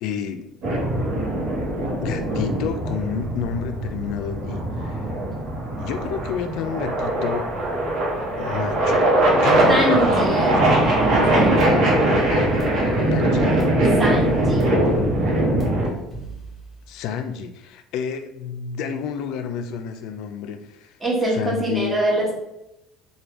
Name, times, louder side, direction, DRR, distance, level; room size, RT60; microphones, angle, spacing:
voice 1, 0.0-0.5 2.0-5.1 5.8-7.5 8.4-9.2 9.4-10.7 12.3-12.5 13.1-13.5 16.9-21.0 21.3-22.0, left 7 dB, 70° left, 8 dB, 0.3 m, -30 dB
sound 1, 0.6-15.9, right 1 dB, 60° right, 0.9 m, -21 dB
voice 2, 9.7-10.5 11.3-11.7 14.0-14.7 21.0-22.3, right 1 dB, 15° right, -5 dB, 1.2 m, -24 dB
sound 2, 10.8-17.1, right 2 dB, 25° left, 1.2 m, -38 dB
3.3 x 2.2 x 2.9 m, 0.89 s
supercardioid pair, 95°, 0 cm